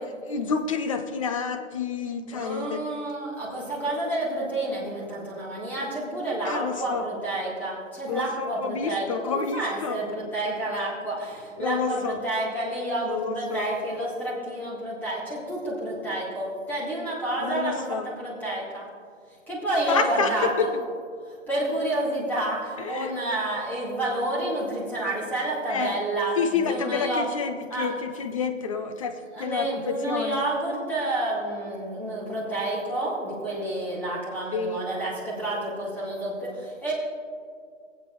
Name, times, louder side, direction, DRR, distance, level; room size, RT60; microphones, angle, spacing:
voice 1, 0.2-2.9 6.4-7.1 8.1-10.0 11.6-12.2 13.0-13.7 17.4-18.1 19.9-20.7 22.8-23.1 25.7-26.0 26.4-30.4 34.5-34.8, left 5 dB, 25° left, 8 dB, 0.5 m, -29 dB
voice 2, 2.3-18.9 19.5-20.7 21.3-27.3 27.7-27.9 29.3-36.9, right 1 dB, 5° left, -7 dB, 2.1 m, -29 dB
19.0 x 8.3 x 3.1 m, 2.1 s
hypercardioid pair, 150°, 39 cm